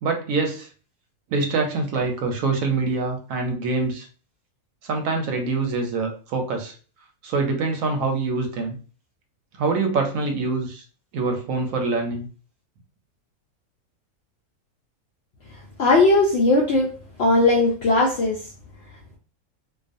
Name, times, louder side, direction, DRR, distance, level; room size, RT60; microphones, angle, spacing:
voice 1, 0.0-0.7 1.3-4.1 4.8-6.7 7.2-8.8 9.6-10.8 11.1-12.3, right 3 dB, 70° right, 3 dB, 0.9 m, -25 dB
voice 2, 15.8-16.9 17.2-18.4, left 2 dB, 70° left, -3 dB, 0.6 m, -18 dB
2.3 x 2.3 x 2.5 m, 0.37 s
omnidirectional pair, 1.6 m